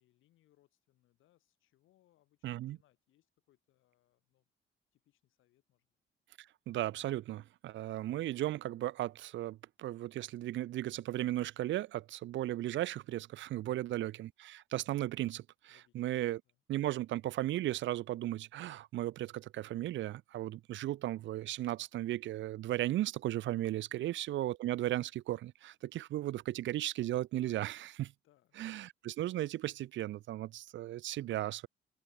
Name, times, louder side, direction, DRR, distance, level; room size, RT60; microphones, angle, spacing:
voice 1, 0.0-4.5 4.9-5.9 15.7-16.2 16.4-16.6 23.9-24.2 28.2-28.6, left 14 dB, 85° left, 5.6 m, -73 dB
voice 2, 2.4-2.8 6.7-16.4 16.7-28.1 28.6-31.7, right 14 dB, 70° right, 0.5 m, -36 dB
open air
cardioid pair, 90°, 20 cm